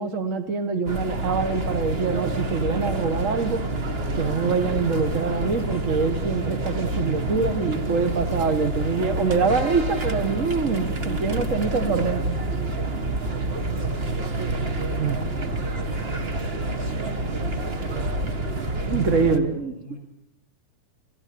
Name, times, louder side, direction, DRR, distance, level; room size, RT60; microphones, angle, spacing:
voice 1, 0.0-3.6 4.1-12.4 14.4-14.5 15.0-15.2 18.9-19.7, right 4 dB, 45° right, 8 dB, 1.0 m, -24 dB
sound 1, 0.9-19.4, right 2 dB, 75° right, 0.5 m, -28 dB
voice 2, 13.7-15.3 15.6-20.0, equal, 30° right, 0 dB, 8.6 m, -45 dB
28.0 x 17.0 x 8.6 m, 0.78 s
omnidirectional pair, 3.7 m